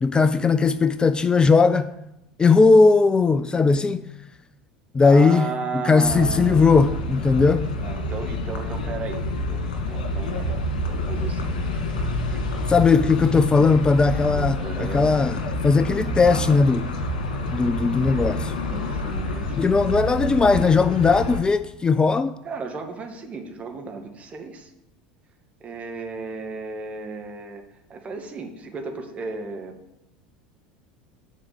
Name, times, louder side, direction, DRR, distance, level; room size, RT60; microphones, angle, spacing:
voice 1, 0.0-1.9 2.4-4.0 4.9-5.5 5.8-7.7 12.7-15.4 15.6-16.9 17.5-18.5 19.6-22.3, left 4 dB, 20° left, 0.5 m, -18 dB
voice 2, 5.0-7.1 7.8-12.4 14.3-15.1 18.7-19.7 22.4-24.7 25.6-27.6 27.9-29.7, right 4 dB, 30° right, 2.0 m, -35 dB
sound 1, 6.0-21.4, left 1 dB, 75° left, 2.3 m, -28 dB
10.0 x 5.0 x 7.5 m
hypercardioid pair, 75°, 4 cm